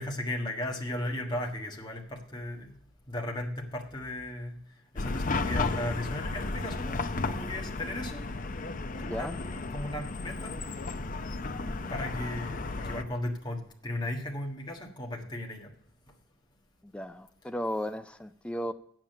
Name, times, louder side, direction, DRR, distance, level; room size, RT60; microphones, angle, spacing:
voice 1, 0.0-2.7 3.1-4.6 4.9-8.2 9.0-10.5 11.9-15.7, left 1 dB, 20° left, 1 dB, 1.5 m, -36 dB
Chatter / Car passing by / Traffic noise roadway noise, 5.0-13.0, left 3 dB, 40° left, 0.6 m, -34 dB
voice 2, 8.9-9.4 16.8-18.7, equal, 5° left, 8 dB, 0.3 m, -35 dB
8.6 x 7.7 x 6.6 m, 0.67 s
head